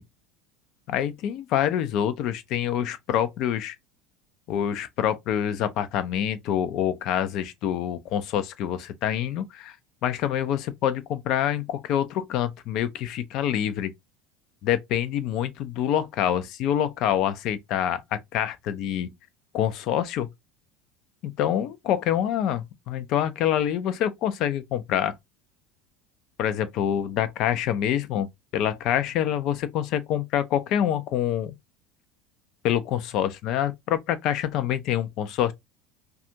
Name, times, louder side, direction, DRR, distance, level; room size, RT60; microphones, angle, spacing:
voice 1, 0.9-3.8 4.5-9.8 10.0-13.9 14.6-19.1 19.5-20.3 21.2-25.2 26.4-31.5 32.6-35.5, left 10 dB, 55° left, 0.4 m, -26 dB
2.4 x 2.3 x 2.7 m
figure-of-eight pair, 70°, 0 cm